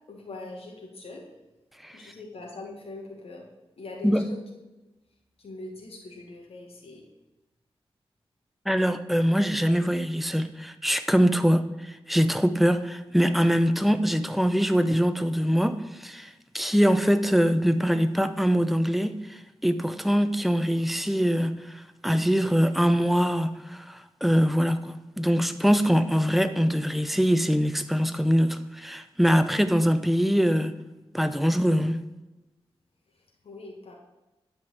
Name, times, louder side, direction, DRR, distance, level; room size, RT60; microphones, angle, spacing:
voice 1, 0.1-1.3 1.9-3.5 3.8-4.4 5.4-7.0 33.1-33.9, left 2 dB, 80° left, -1 dB, 1.7 m, -42 dB
voice 2, 8.7-16.3 16.5-19.1 19.6-30.7 31.1-32.0, equal, ahead, 10 dB, 0.6 m, -23 dB
11.0 x 4.5 x 7.7 m, 1.1 s
wide cardioid pair, 100°, 10 cm